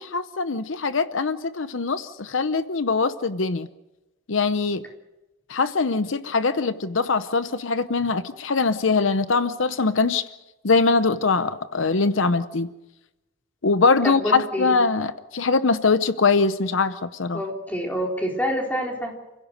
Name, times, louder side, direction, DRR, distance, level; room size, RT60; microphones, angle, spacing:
voice 1, 0.0-3.7 4.3-4.9 5.5-10.3 10.6-12.7 13.6-17.4, left 4 dB, 75° left, 12 dB, 0.8 m, -22 dB
voice 2, 14.0-14.7 17.3-19.1, equal, 10° left, 0 dB, 3.9 m, -27 dB
29.5 x 16.5 x 6.7 m, 1.0 s
head